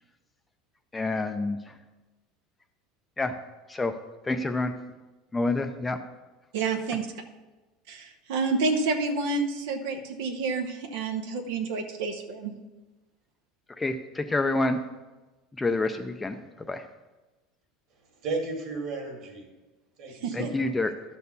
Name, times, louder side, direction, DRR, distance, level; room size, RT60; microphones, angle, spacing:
voice 1, 0.9-1.7 3.2-3.4 3.7-3.9 4.2-4.7 5.3-6.0 13.8-14.8 15.6-16.9 20.3-20.9, left 2 dB, 10° left, 7 dB, 0.4 m, -28 dB
voice 2, 6.5-7.1 7.9-12.5 20.2-20.5, right 4 dB, 75° right, 4 dB, 0.8 m, -29 dB
voice 3, 18.2-19.5 20.0-20.8, right 3 dB, 40° right, 3 dB, 2.0 m, -34 dB
12.0 x 4.4 x 6.8 m, 1.2 s
cardioid pair, 165°, 0 cm